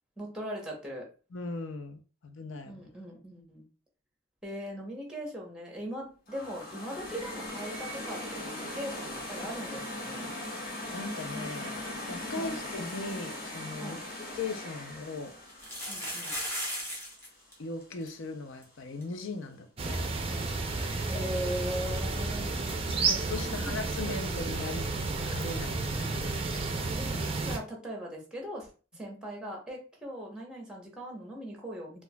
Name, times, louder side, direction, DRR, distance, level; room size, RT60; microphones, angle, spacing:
voice 1, 0.2-1.1 2.6-3.6 4.4-10.3 12.3-12.6 13.8-14.0 15.9-16.4 21.0-22.6 23.5-24.0 26.9-27.1 27.4-32.0, equal, 5° right, 0.8 m, -39 dB
voice 2, 1.3-2.8 10.9-14.0 14.3-15.4 17.6-20.0 23.0-24.9 25.3-26.4, left 3 dB, 70° left, 0.5 m, -39 dB
sound 1, 6.3-17.3, left 1 dB, 45° left, 1.2 m, -40 dB
sound 2, 14.3-14.4 15.5-17.3 17.5-17.6 17.8-18.1 18.6-18.7 19.0-19.1 21.1-21.2, equal, 10° left, 1.1 m, -36 dB
sound 3, 19.8-27.6, right 3 dB, 25° right, 0.4 m, -31 dB
4.4 x 2.4 x 2.2 m
head